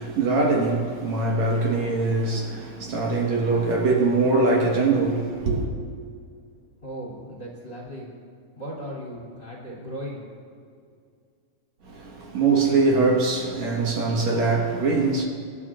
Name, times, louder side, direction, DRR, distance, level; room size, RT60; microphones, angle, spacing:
voice 1, 0.0-5.7 11.8-15.2, right 3 dB, 65° right, 2.6 m, -22 dB
voice 2, 6.8-8.1 8.5-10.2, equal, 20° left, 2.9 m, -36 dB
26.5 x 11.5 x 2.5 m
omnidirectional pair, 3.5 m